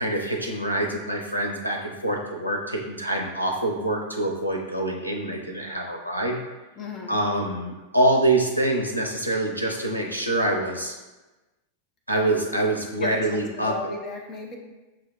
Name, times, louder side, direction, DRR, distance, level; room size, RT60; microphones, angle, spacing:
voice 1, 0.0-6.4 7.1-11.0 12.1-13.7, right 1 dB, 90° right, 1 dB, 0.5 m, -25 dB
voice 2, 6.8-7.2 13.0-14.6, left 3 dB, 25° left, 0 dB, 0.7 m, -35 dB
5.9 x 2.1 x 3.0 m, 1.1 s
figure-of-eight pair, 90°, 0 cm